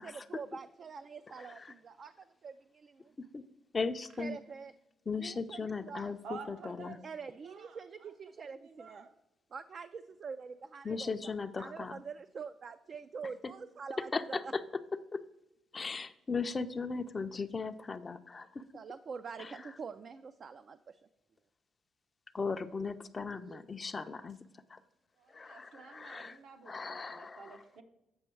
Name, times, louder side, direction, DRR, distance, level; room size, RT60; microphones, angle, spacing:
voice 1, 0.0-3.2 4.1-4.7 5.2-6.1 6.9-9.1 9.5-14.5 18.7-21.0 23.3-23.6, right 5 dB, 50° right, 9 dB, 0.3 m, -45 dB
voice 2, 3.7-4.4 5.1-6.2 6.5-7.0 10.8-11.9 14.1-14.6 15.1-15.2 15.7-18.6 19.4-19.5 22.3-24.4 24.7-24.8 25.3-26.4 26.7-27.4, left 4 dB, 30° left, 10 dB, 0.4 m, -37 dB
voice 3, 6.2-7.0 7.3-8.1 8.4-9.1 25.2-27.8, right 5 dB, 75° right, 5 dB, 0.9 m, -51 dB
7.8 x 5.4 x 4.5 m, 0.92 s
cardioid pair, 90°, 0 cm